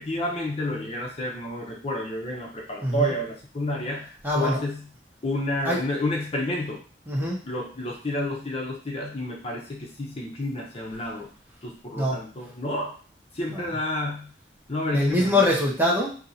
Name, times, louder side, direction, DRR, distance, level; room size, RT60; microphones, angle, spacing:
voice 1, 0.0-4.9 5.2-6.8 7.5-11.3 11.6-13.0 13.3-14.3 14.7-15.4, left 1 dB, 35° left, -1 dB, 0.7 m, -30 dB
voice 2, 2.8-3.1 4.2-4.6 5.6-5.8 7.1-7.4 12.0-12.2 13.5-13.7 14.9-16.1, left 1 dB, 10° right, -4 dB, 1.1 m, -23 dB
2.8 x 2.7 x 4.0 m, 0.37 s
head